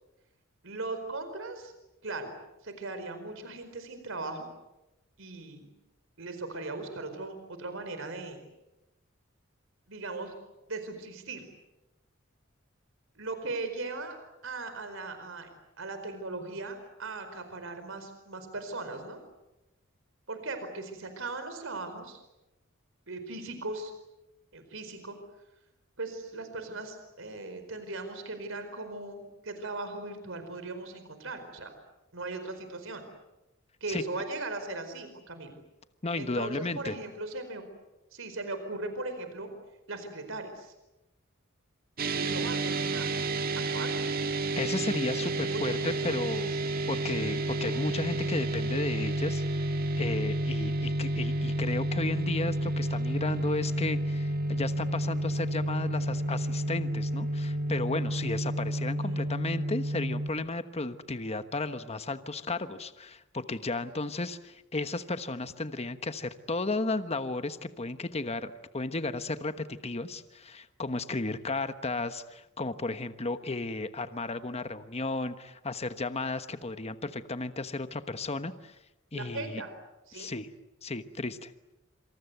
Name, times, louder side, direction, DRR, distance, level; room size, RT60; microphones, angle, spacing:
voice 1, 0.6-1.7 2.0-2.3 2.6-4.5 5.2-5.7 6.2-8.4 9.9-10.3 10.7-11.4 13.2-14.2 14.4-15.5 15.8-19.2 20.3-22.2 23.1-23.9 24.5-25.2 26.0-31.7 32.1-33.1 33.8-35.5 36.1-37.6 38.1-39.5 39.9-40.7 42.1-43.1 43.7-44.1 45.3-46.1 47.1-47.4 59.0-59.2 79.1-79.7 80.1-80.3, right 2 dB, 70° right, 8 dB, 4.7 m, -38 dB
voice 2, 36.0-37.0 44.6-46.6 46.9-49.6 50.0-78.8 79.1-79.6 80.1-80.5 80.8-81.5, left 2 dB, 30° left, 10 dB, 1.2 m, -34 dB
sound 1, 42.0-60.3, right 1 dB, 45° right, 1.9 m, -30 dB
27.0 x 26.5 x 8.1 m, 0.96 s
head